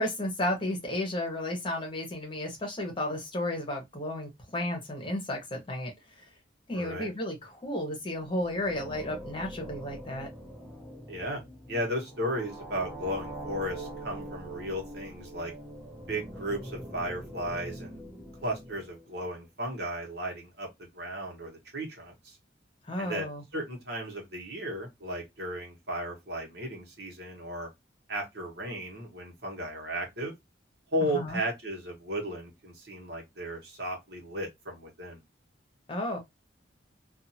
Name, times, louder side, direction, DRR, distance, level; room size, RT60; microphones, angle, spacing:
voice 1, 0.0-5.9 6.2-6.3 6.7-10.3 22.9-23.4 31.1-31.4 35.9-36.2, left 1 dB, 25° left, 1.0 m, -33 dB
voice 2, 6.7-7.1 11.1-11.4 11.7-15.5 16.1-18.0 18.4-22.4 23.0-23.3 23.5-27.7 28.1-30.3 30.9-35.2, equal, 60° right, 1.2 m, -35 dB
sound 1, 8.0-19.3, right 1 dB, 5° left, 0.5 m, -43 dB
2.6 x 2.5 x 2.6 m
head